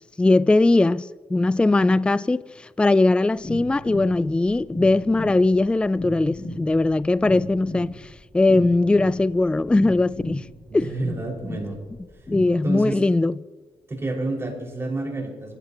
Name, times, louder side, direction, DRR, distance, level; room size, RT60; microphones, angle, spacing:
voice 1, 0.2-8.1 8.3-10.5 10.7-10.9 12.3-13.3, left 2 dB, 10° left, 0.4 m, -20 dB
sound 1, 3.4-12.5, left 1 dB, 30° left, 6.2 m, -35 dB
voice 2, 10.7-11.8 12.6-13.0 13.9-15.6, right 2 dB, 25° right, 5.7 m, -29 dB
30.0 x 16.0 x 3.0 m
cardioid pair, 80°, 9 cm